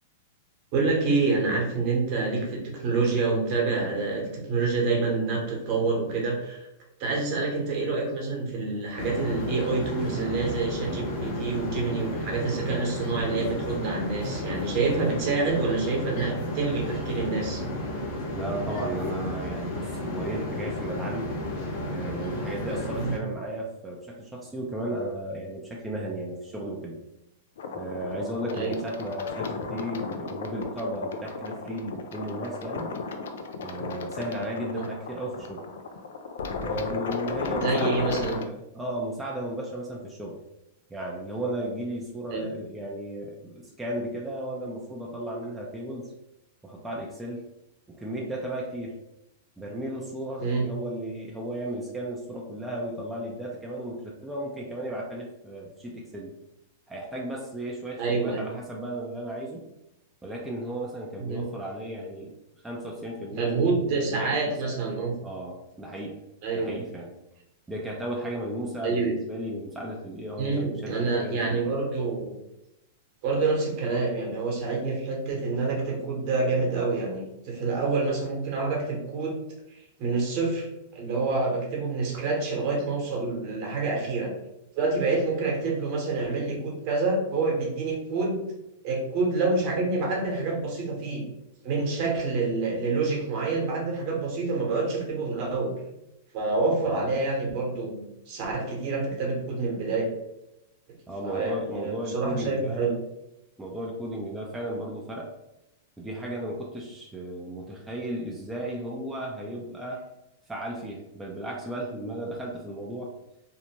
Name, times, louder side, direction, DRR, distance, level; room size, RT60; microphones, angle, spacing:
voice 1, 0.7-6.6 7.0-17.6 22.9-23.1 28.5-28.7 34.7-34.8 37.6-38.4 42.3-42.5 50.4-50.6 58.0-58.4 61.2-61.4 63.3-65.1 66.4-66.8 68.8-69.1 70.4-72.3 73.2-79.4 80.0-84.3 84.8-88.4 88.8-91.2 91.6-95.7 96.3-100.1 101.2-102.9, right 3 dB, 50° right, -1 dB, 1.0 m, -27 dB
sound 1, 9.0-23.2, left 1 dB, 50° left, 0.7 m, -33 dB
voice 2, 18.3-21.3 21.9-27.0 27.7-32.9 33.6-35.6 36.6-40.4 40.9-46.1 46.6-47.5 47.9-49.0 49.6-56.4 56.9-59.7 60.2-62.3 62.6-64.6 65.2-66.2 66.5-67.2 67.7-71.7 96.9-97.2 101.1-102.9 103.6-105.3 106.0-110.0 110.5-113.1, right 1 dB, 10° right, -3 dB, 0.4 m, -35 dB
sound 2, 27.6-38.4, left 4 dB, 75° left, 0.3 m, -34 dB
2.7 x 2.1 x 2.9 m, 0.89 s
hypercardioid pair, 120°, 0 cm